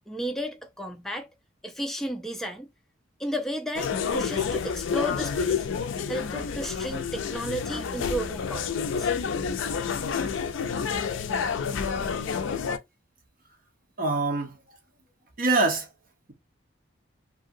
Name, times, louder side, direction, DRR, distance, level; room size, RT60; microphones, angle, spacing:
voice 1, 0.1-1.3 1.6-2.7 3.2-5.7 6.1-9.1, equal, ahead, 0.4 m, -33 dB
sound 1, 3.7-12.8, left 6 dB, 70° left, 0.4 m, -29 dB
voice 2, 14.0-14.6 15.4-15.9, right 3 dB, 45° right, 0.7 m, -24 dB
2.7 x 2.7 x 2.5 m
head